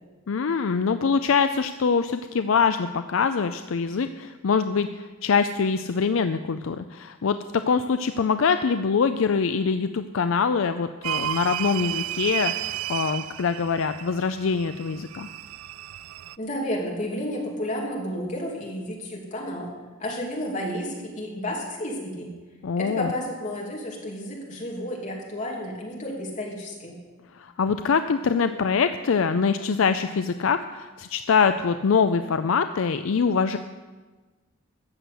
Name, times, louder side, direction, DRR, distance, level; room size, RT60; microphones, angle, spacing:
voice 1, 0.3-15.3 22.6-23.1 27.3-33.6, left 5 dB, 65° left, 10 dB, 0.4 m, -24 dB
sound 1, 11.0-16.3, right 14 dB, 90° right, 0.3 m, -32 dB
voice 2, 16.4-19.7 20.0-22.3 22.8-27.0, equal, 35° left, -2 dB, 2.9 m, -31 dB
14.0 x 6.9 x 8.1 m, 1.3 s
head